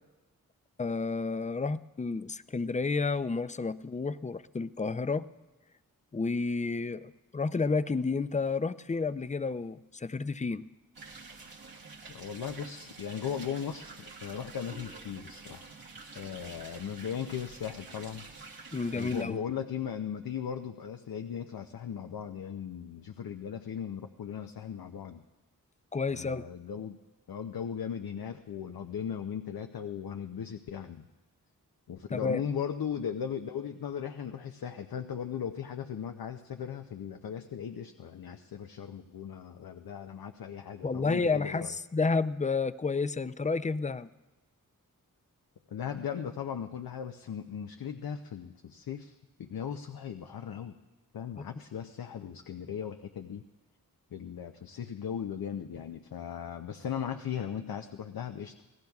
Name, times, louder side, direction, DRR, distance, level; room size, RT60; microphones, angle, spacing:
voice 1, 0.8-5.3 6.1-10.6 18.7-19.4 25.9-26.4 32.1-32.4 40.8-44.1, left 4 dB, 20° left, 14 dB, 0.5 m, -31 dB
sound 1, 10.9-19.2, right 3 dB, 90° right, 1.5 m, -48 dB
voice 2, 12.1-15.6 16.1-18.3 18.9-25.2 26.1-27.0 27.3-31.1 31.9-41.8 45.7-50.8 51.1-53.4 54.1-58.5, left 8 dB, 85° left, 6 dB, 0.6 m, -38 dB
27.5 x 17.5 x 2.4 m, 1.1 s
cardioid pair, 55°, 35 cm